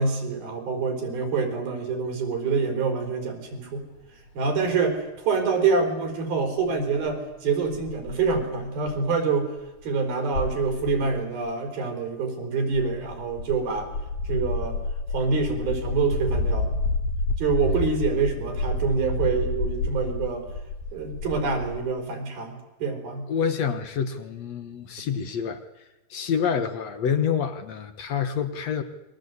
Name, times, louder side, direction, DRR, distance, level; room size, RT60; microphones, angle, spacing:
voice 1, 0.0-3.8 4.3-9.5 9.8-13.9 14.3-14.8 15.1-16.8 17.4-20.5 20.9-23.3, right 4 dB, 75° right, 5 dB, 6.1 m, -26 dB
sound 1, 4.0-4.1 4.3-4.4 4.8-4.9 6.7-6.8 7.1-7.2 7.3-7.4 7.7-9.0 9.8-9.9 10.3-11.2 12.7-21.9, left 2 dB, 75° left, 4.5 m, -30 dB
voice 2, 23.3-25.6 26.1-28.8, left 7 dB, 60° left, 9 dB, 1.9 m, -27 dB
28.5 x 22.0 x 8.2 m, 1.0 s
omnidirectional pair, 4.4 m